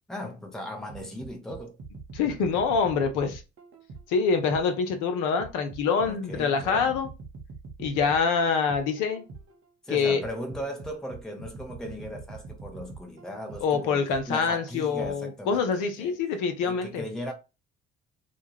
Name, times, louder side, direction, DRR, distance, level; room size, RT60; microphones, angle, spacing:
voice 1, 0.1-1.8 6.0-7.0 9.8-16.2 16.6-17.3, equal, ahead, 0.7 m, -37 dB
sound 1, 0.9-4.9 5.4-9.6 10.2-14.4 15.0-15.1, right 4 dB, 40° right, 0.7 m, -44 dB
voice 2, 2.1-3.4 4.1-7.1 7.8-9.3 9.9-10.2 13.6-17.0, left 5 dB, 60° left, 0.7 m, -25 dB
2.3 x 2.2 x 3.0 m
figure-of-eight pair, 45°, 35 cm